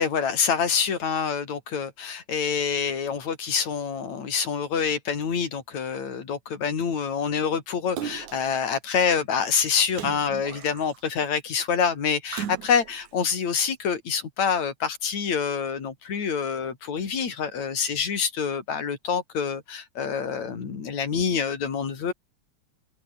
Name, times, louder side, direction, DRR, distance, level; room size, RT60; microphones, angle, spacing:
voice 1, 0.0-22.1, left 6 dB, 70° left, 4.9 m, -26 dB
Splash splatter, 8.0-8.6 9.9-11.1 12.3-13.1 13.7-13.8, right 10 dB, 85° right, 3.2 m, -36 dB
open air
omnidirectional pair, 3.3 m